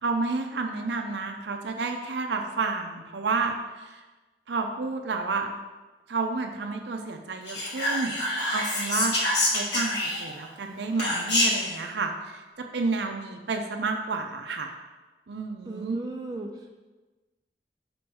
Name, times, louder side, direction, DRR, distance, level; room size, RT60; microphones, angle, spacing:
voice 1, 0.0-4.0 4.5-5.5 6.1-9.1 9.5-12.4 12.7-14.7 15.3-16.0, right 4 dB, 70° right, 3 dB, 0.5 m, -30 dB
Whispering, 7.5-10.5 11.0-11.7, left 1 dB, 80° left, 1.6 m, -26 dB
voice 2, 15.7-16.8, right 2 dB, 20° right, 1 dB, 0.4 m, -36 dB
5.1 x 4.7 x 6.1 m, 1.2 s
head